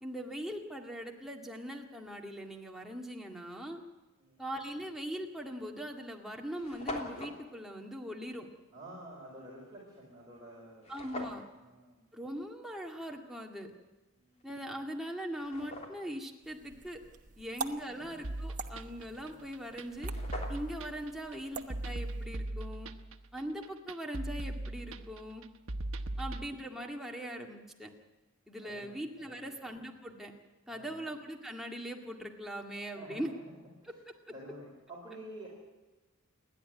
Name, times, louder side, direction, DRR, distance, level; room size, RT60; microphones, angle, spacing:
voice 1, 0.0-3.8 4.4-8.5 10.9-11.4 12.1-13.7 14.4-17.0 17.4-20.1 20.5-22.9 23.3-25.4 26.2-27.9 28.5-30.3 30.7-33.3 33.8-34.1, equal, ahead, 0 dB, 2.1 m, -41 dB
sound 1, 5.0-5.2 5.9-6.0 6.2-6.3 6.5-7.4 10.8-11.5 14.4-14.5 15.0-16.2 19.5-19.6 19.9-20.9, left 1 dB, 30° left, 3.3 m, -43 dB
voice 2, 8.7-10.9 11.6-12.1 14.2-14.5 17.9-18.1 26.1-26.2 28.6-29.5 30.7-31.0 32.8-33.2 34.3-35.5, right 1 dB, 20° right, -4 dB, 5.0 m, -50 dB
sound 2, 16.4-22.3, right 4 dB, 35° right, 1.1 m, -46 dB
sound 3, 18.2-26.5, right 1 dB, 65° right, 1.2 m, -39 dB
28.5 x 11.5 x 9.6 m, 1.1 s
head